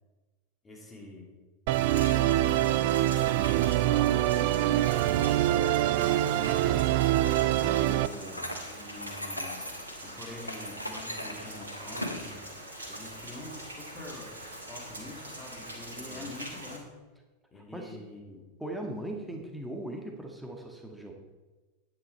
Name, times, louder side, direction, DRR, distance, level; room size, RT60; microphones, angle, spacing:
voice 1, 0.6-1.4 2.0-7.0 8.7-9.8 10.0-12.5 12.9-17.0 17.5-18.5, left 2 dB, 15° left, -1 dB, 3.1 m, -45 dB
Musical instrument, 1.7-8.1, right 14 dB, 50° right, 0.4 m, -25 dB
Rain, 1.7-16.8, right 1 dB, 75° right, 2.3 m, -43 dB
voice 2, 7.6-8.5 16.0-16.3 17.5-18.0 18.6-21.1, right 1 dB, 5° right, 1 dB, 1.7 m, -40 dB
sound 1, 8.4-9.9 10.4-12.3, equal, 90° left, 1.0 m, -38 dB
10.0 x 9.6 x 4.4 m, 1.2 s
figure-of-eight pair, 85°, 0 cm